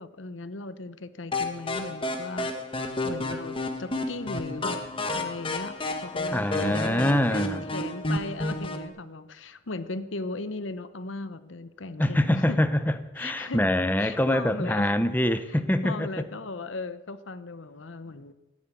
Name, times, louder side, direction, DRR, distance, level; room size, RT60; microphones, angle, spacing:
voice 1, 0.0-2.5 3.0-4.8 5.1-12.6 13.2-13.6 14.0-15.0 15.8-18.3, left 3 dB, 80° left, 0.9 m, -37 dB
sound 1, 1.3-8.9, left 2 dB, 30° left, 1.4 m, -31 dB
voice 2, 6.3-7.6 12.0-16.2, left 1 dB, 10° left, 0.7 m, -25 dB
14.0 x 9.6 x 9.0 m
head